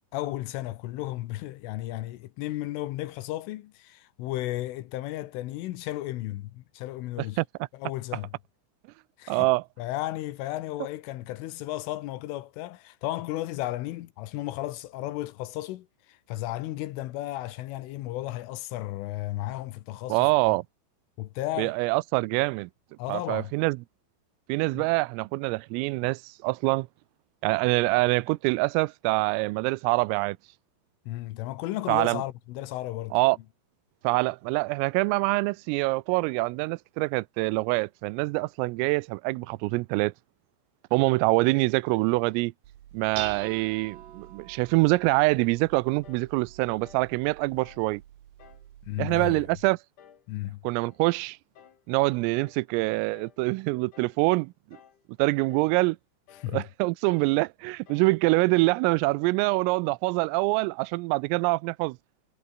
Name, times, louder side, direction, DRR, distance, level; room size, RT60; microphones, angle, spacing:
voice 1, 0.1-7.4 7.7-8.4 9.2-9.5 9.8-20.6 21.2-21.8 23.0-23.5 24.7-24.9 31.1-33.2 48.9-49.4 50.3-50.6 56.3-56.7, left 16 dB, 80° left, 3.6 m, -34 dB
voice 2, 9.3-9.6 20.1-20.6 21.6-22.7 23.1-23.8 24.5-26.9 27.4-30.4 31.9-32.2 33.1-33.4 34.0-40.1 40.9-42.5 42.9-48.0 49.0-49.8 50.6-51.4 51.9-54.5 55.2-56.0 56.5-62.0, right 24 dB, 85° right, 3.3 m, -25 dB
Dishes pots and pans, 42.6-49.7, right 11 dB, 60° right, 3.6 m, -45 dB
sound 1, 46.0-46.3 46.8-47.1 47.6-47.9 48.4-48.7 49.2-49.5 50.0-50.3 50.8-51.1 51.5-51.8 52.3-52.6 53.1-53.4 53.9-54.2 54.7-55.0 55.5-55.8 56.3-56.6 57.1-57.4 57.9-58.2, left 8 dB, 45° left, 3.1 m, -54 dB
omnidirectional pair, 5.9 m